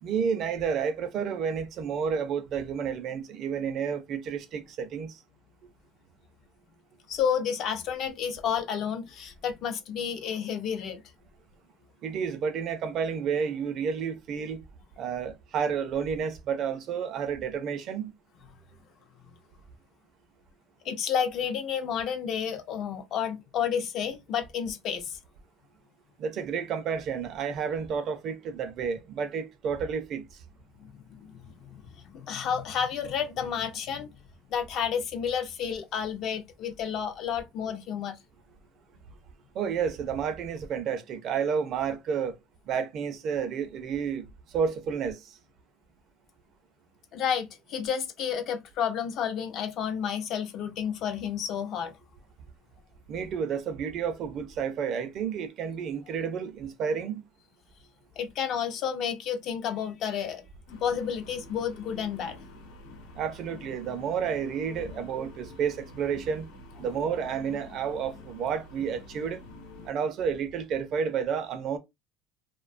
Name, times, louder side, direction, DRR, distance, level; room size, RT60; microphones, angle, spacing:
voice 1, 0.0-5.2 12.0-14.6 15.0-18.1 26.2-30.3 39.5-42.4 42.7-44.3 44.5-45.2 53.1-57.2 63.2-66.5 66.8-69.4 69.8-71.8, right 6 dB, 40° right, 0.4 m, -30 dB
voice 2, 7.1-11.0 20.8-25.2 30.8-34.1 34.5-38.2 47.1-51.9 58.2-60.4 60.8-62.4, left 8 dB, 45° left, 0.4 m, -31 dB
sound 1, 60.7-69.9, left 2 dB, 90° left, 0.9 m, -47 dB
2.5 x 2.2 x 2.4 m
cardioid pair, 160°, 0 cm